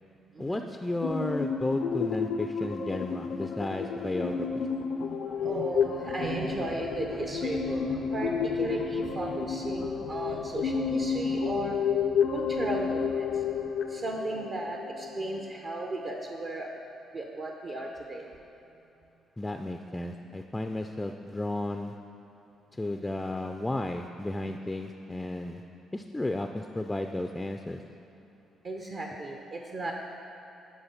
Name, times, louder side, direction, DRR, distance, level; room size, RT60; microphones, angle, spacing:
voice 1, 0.4-4.7 19.4-21.9 22.7-25.6 25.9-27.8, left 2 dB, 15° left, 5 dB, 0.4 m, -33 dB
sound 1, 1.0-15.4, left 6 dB, 75° left, 0.5 m, -31 dB
voice 2, 4.9-11.8 12.3-16.7 17.1-18.3 24.6-24.7 28.6-29.9, right 2 dB, 45° right, 1 dB, 0.7 m, -36 dB
sound 2, 6.2-13.7, right 1 dB, 65° right, 1.0 m, -47 dB
9.6 x 4.6 x 5.8 m, 3.0 s
cardioid pair, 90°, 0 cm